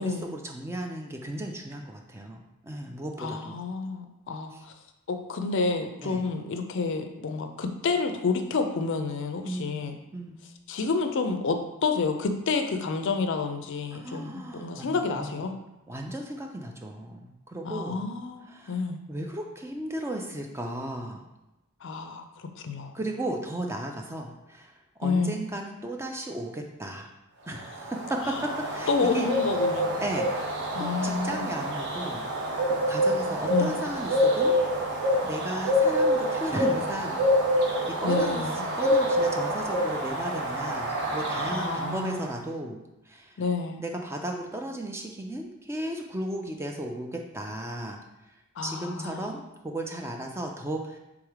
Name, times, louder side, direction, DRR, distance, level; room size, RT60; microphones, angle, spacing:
voice 1, 0.0-3.6 4.5-4.6 6.0-6.2 9.5-10.4 13.9-15.4 15.9-18.0 18.5-18.8 19.1-21.2 22.9-24.7 25.0-27.1 27.5-29.3 30.0-32.2 32.7-34.5 35.2-37.2 37.5-38.5 38.8-42.8 43.1-43.4 43.8-48.0 48.6-51.0, right 1 dB, 10° right, 2 dB, 0.3 m, -35 dB
voice 2, 3.2-4.7 5.1-10.0 10.7-15.5 17.6-19.0 21.8-22.2 22.6-22.9 25.0-25.4 28.3-28.4 28.9-29.9 30.7-31.4 33.5-33.7 38.0-38.6 41.5-42.2 43.4-43.8 48.6-49.3, left 4 dB, 55° left, 7 dB, 0.4 m, -29 dB
Bird, 27.6-42.3, equal, 50° right, 0.8 m, -27 dB
3.5 x 3.2 x 4.8 m, 0.95 s
head